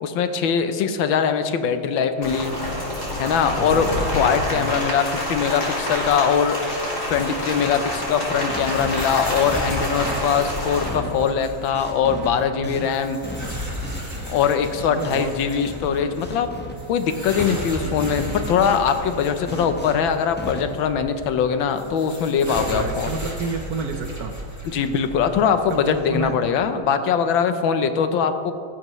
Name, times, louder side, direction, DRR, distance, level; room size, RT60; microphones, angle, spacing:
voice 1, 0.0-2.5 3.2-3.9 4.1-6.6 7.1-13.2 14.3-16.5 16.9-23.2 24.6-28.5, left 7 dB, 75° left, 9 dB, 1.5 m, -22 dB
Rain, 2.2-10.9, left 1 dB, 35° left, 3.7 m, -27 dB
voice 2, 3.6-4.1 4.5-4.9 12.6-12.9 14.8-15.3 17.8-18.2 22.5-24.3 25.7-26.3, right 4 dB, 60° right, 5 dB, 1.1 m, -30 dB
sound 1, 7.1-8.1 8.5-17.7 18.0-20.9, equal, 5° left, 0.9 m, -36 dB
sound 2, 8.3-26.3, equal, 10° right, 1.7 m, -35 dB
16.5 x 14.5 x 3.1 m, 2.4 s
omnidirectional pair, 2.2 m